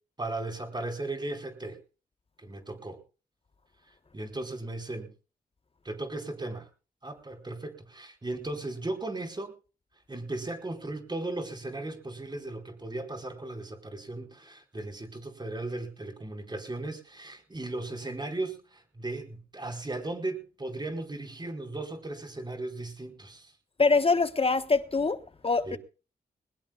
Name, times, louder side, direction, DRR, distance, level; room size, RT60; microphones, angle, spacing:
voice 1, 0.2-1.8 2.4-3.0 3.8-5.1 5.8-6.7 7.0-9.5 10.1-23.5 25.7-25.8, right 2 dB, 25° right, 4.8 m, -36 dB
voice 2, 23.8-25.8, left 4 dB, 35° left, 1.3 m, -24 dB
22.0 x 20.0 x 2.4 m
cardioid pair, 60°, 17 cm